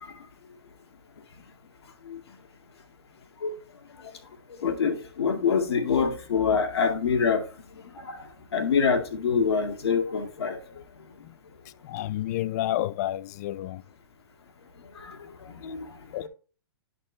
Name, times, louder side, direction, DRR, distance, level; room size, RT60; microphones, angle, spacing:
voice 1, 4.6-7.4 8.0-8.2 8.5-10.6 15.1-15.2 15.6-15.9 16.2-16.3, left 6 dB, 80° left, 1.9 m, -25 dB
voice 2, 11.8-13.8 16.1-16.3, left 14 dB, 40° left, 0.3 m, -30 dB
10.5 x 4.4 x 3.2 m
hypercardioid pair, 145°, 14 cm